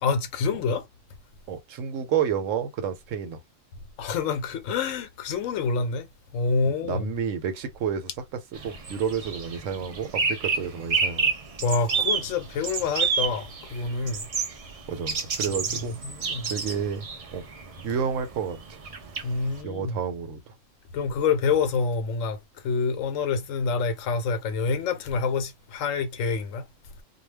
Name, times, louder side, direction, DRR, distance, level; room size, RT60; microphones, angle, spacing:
voice 1, 0.0-0.8 4.0-7.1 11.6-14.3 16.0-16.5 19.2-20.0 20.9-26.7, left 5 dB, 80° left, 1.0 m, -27 dB
voice 2, 1.5-3.4 6.8-8.1 8.6-11.3 14.9-15.9 16.5-17.0 17.3-17.4 17.8-18.8 19.6-20.4, right 7 dB, 80° right, 1.0 m, -30 dB
sound 1, 8.5-19.6, right 5 dB, 60° right, 0.3 m, -30 dB
2.2 x 2.2 x 3.3 m
omnidirectional pair, 1.3 m